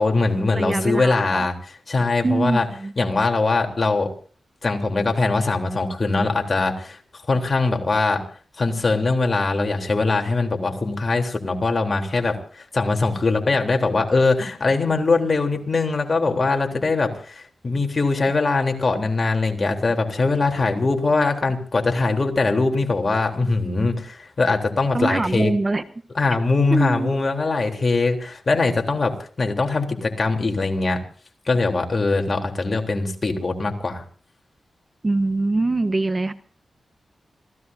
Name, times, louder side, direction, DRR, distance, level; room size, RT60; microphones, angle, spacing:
voice 1, 0.0-1.5 1.9-2.7 3.0-4.1 4.6-7.0 7.3-8.2 8.6-25.5 26.2-29.1 29.4-31.0 31.5-34.0, left 3 dB, 45° left, 4 dB, 3.6 m, -21 dB
voice 2, 0.5-1.5 2.2-2.9 24.9-25.8 26.7-27.2 35.0-36.3, right 2 dB, 35° right, 13 dB, 1.0 m, -23 dB
27.5 x 16.5 x 2.8 m, 0.43 s
cardioid pair, 55°, 0 cm